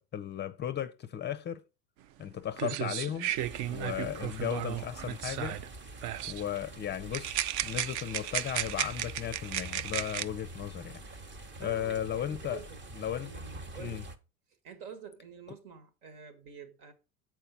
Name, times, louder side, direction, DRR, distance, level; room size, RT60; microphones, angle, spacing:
voice 1, 0.0-1.6 2.2-3.3 3.7-5.6 6.3-11.0 11.6-12.6 12.9-13.3 13.8-14.0, left 10 dB, 25° left, 0.5 m, -35 dB
sound 1, 2.2-2.3 2.6-5.7 6.0-6.4 7.1-10.2, right 12 dB, 45° right, 0.5 m, -34 dB
sound 2, 3.3-14.2, right 2 dB, 25° right, 0.9 m, -46 dB
voice 2, 11.6-12.8 13.2-14.1 14.6-16.9, right 6 dB, 70° right, 1.9 m, -48 dB
6.8 x 4.5 x 5.8 m
hypercardioid pair, 90°, 46 cm